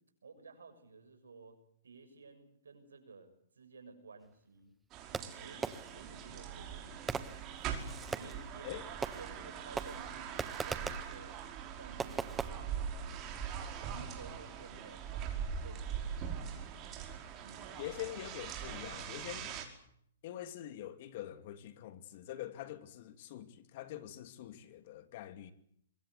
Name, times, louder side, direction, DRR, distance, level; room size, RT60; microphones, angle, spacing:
voice 1, 0.2-1.6 1.8-4.7 5.4-5.6 5.9-7.1 8.1-8.7 9.1-11.4 11.7-13.3 13.8-16.7 17.4-18.0, right 4 dB, 90° right, 6.7 m, -54 dB
sound 1, 4.9-19.7, right 7 dB, 30° right, 5.2 m, -42 dB
Fireworks, 5.1-6.1 7.1-8.5 9.0-9.5 9.8-11.1 12.0-12.5, right 5 dB, 10° right, 1.4 m, -40 dB
voice 2, 17.8-19.6 20.2-25.5, left 13 dB, 50° left, 2.6 m, -45 dB
25.0 x 22.5 x 8.1 m
hypercardioid pair, 135°, 0 cm